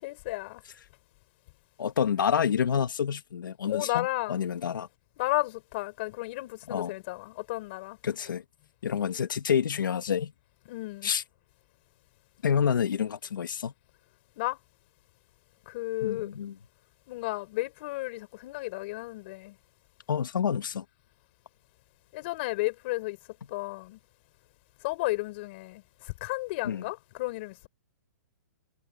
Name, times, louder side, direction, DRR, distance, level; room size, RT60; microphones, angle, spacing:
voice 1, 0.0-0.6 3.7-4.4 5.2-8.0 10.7-11.1 14.4-14.6 15.7-16.3 17.1-19.6 22.1-23.2 23.5-24.0 24.8-27.7, left 21 dB, 30° left, 4.2 m, -33 dB
voice 2, 1.8-4.9 6.7-6.9 8.0-8.4 8.8-10.3 11.0-11.2 12.4-13.7 16.0-16.5 20.1-20.8 26.6-26.9, left 8 dB, 80° left, 2.0 m, -28 dB
hypercardioid pair, 170°, 11 cm